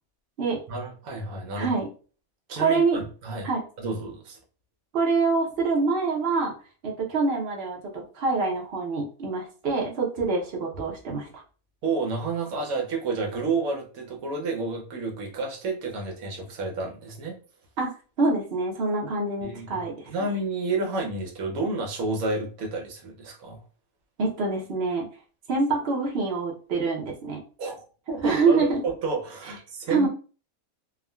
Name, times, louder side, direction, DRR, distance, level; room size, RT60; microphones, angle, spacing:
voice 1, 0.7-1.7 2.5-3.5 3.8-4.4 11.8-17.4 19.4-23.6 27.6-30.1, right 3 dB, 75° right, 2 dB, 1.2 m, -30 dB
voice 2, 1.5-1.9 2.6-3.0 3.4-3.6 4.9-6.5 6.8-11.4 17.8-17.9 18.2-20.1 24.2-25.1 25.5-27.4 28.2-28.8 29.9-30.1, right 4 dB, 55° right, -1 dB, 0.7 m, -25 dB
3.5 x 2.1 x 2.2 m, 0.38 s
omnidirectional pair, 1.5 m